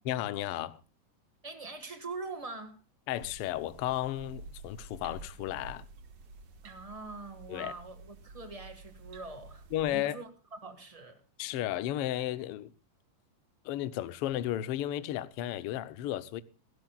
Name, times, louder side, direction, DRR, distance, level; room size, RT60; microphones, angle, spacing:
voice 1, 0.1-0.8 3.1-5.8 7.5-7.7 9.7-10.2 11.4-12.7 13.6-16.4, left 13 dB, 85° left, 1.3 m, -33 dB
voice 2, 1.4-2.8 6.6-11.2, right 3 dB, 30° right, 0.6 m, -43 dB
sound 1, 3.1-10.0, right 3 dB, 60° right, 2.4 m, -50 dB
28.0 x 12.0 x 2.3 m
omnidirectional pair, 3.6 m